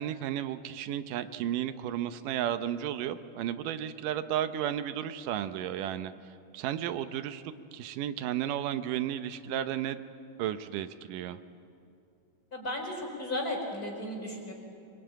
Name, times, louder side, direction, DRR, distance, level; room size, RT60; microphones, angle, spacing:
voice 1, 0.0-6.1 6.5-7.4 7.7-10.0 10.4-11.4, right 11 dB, 90° right, 10 dB, 2.5 m, -33 dB
voice 2, 12.5-14.5, left 1 dB, 25° left, 0 dB, 5.0 m, -35 dB
24.5 x 23.5 x 9.1 m, 2.6 s
omnidirectional pair, 3.7 m